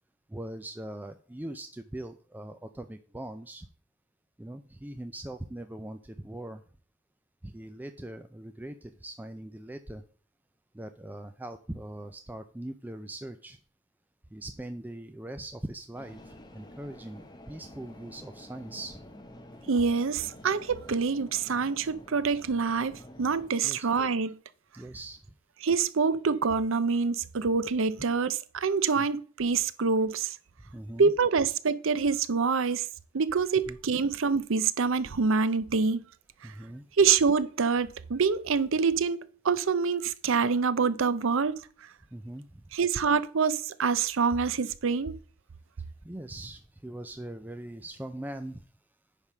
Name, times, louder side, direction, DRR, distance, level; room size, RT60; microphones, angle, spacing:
voice 1, 0.3-3.7 4.4-6.6 7.4-10.0 10.7-13.6 14.3-19.0 23.6-23.9 24.7-25.2 29.0-29.1 30.7-31.1 33.7-33.8 36.4-36.8 42.1-42.6 46.0-48.6, right 1 dB, 10° right, 0.4 m, -41 dB
sound 1, 15.9-23.5, left 1 dB, 20° left, 1.0 m, -49 dB
voice 2, 19.7-24.4 25.6-30.4 31.0-32.9 33.1-36.0 37.0-39.2 39.4-41.6 42.7-45.1, right 5 dB, 65° right, 0.6 m, -26 dB
9.8 x 3.6 x 6.0 m
head